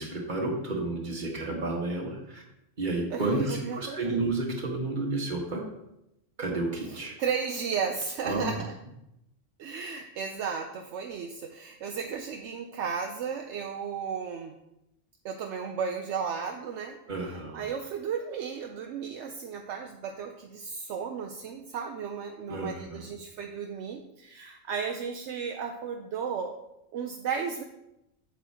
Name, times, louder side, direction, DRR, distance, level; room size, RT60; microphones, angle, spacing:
voice 1, 0.0-2.4 2.8-5.7 6.4-7.1 8.2-8.6 17.1-17.6 22.5-23.1, right 2 dB, 40° right, -1 dB, 1.6 m, -31 dB
voice 2, 3.1-4.2 6.9-8.7 9.6-14.6 15.2-17.0 17.5-26.6 26.9-27.6, right 6 dB, 75° right, 4 dB, 0.9 m, -34 dB
8.1 x 7.4 x 2.8 m, 0.86 s
omnidirectional pair, 1.3 m